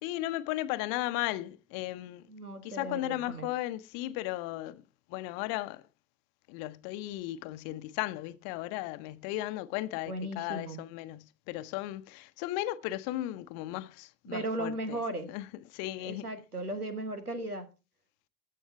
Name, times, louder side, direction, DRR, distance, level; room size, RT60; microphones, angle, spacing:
voice 1, 0.0-2.3 2.6-4.8 5.1-5.8 6.5-15.0 15.3-16.3, left 16 dB, 50° left, 0.9 m, -36 dB
voice 2, 2.3-3.5 10.1-10.8 14.3-15.3 16.0-17.7, right 1 dB, 90° right, 1.4 m, -36 dB
14.5 x 6.5 x 4.5 m
figure-of-eight pair, 60°, 44 cm